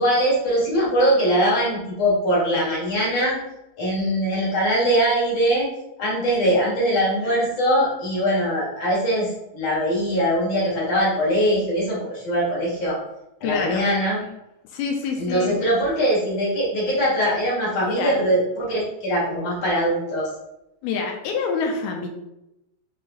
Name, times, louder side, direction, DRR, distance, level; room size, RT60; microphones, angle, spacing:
voice 1, 0.0-3.4 3.8-5.7 6.0-13.0 13.4-14.2 15.2-20.3, equal, 45° left, -6 dB, 2.6 m, -22 dB
voice 2, 13.4-13.8 14.7-15.6 18.0-18.2 20.8-22.1, left 5 dB, 75° left, 2 dB, 2.7 m, -26 dB
6.6 x 4.7 x 3.1 m, 0.88 s
omnidirectional pair, 4.6 m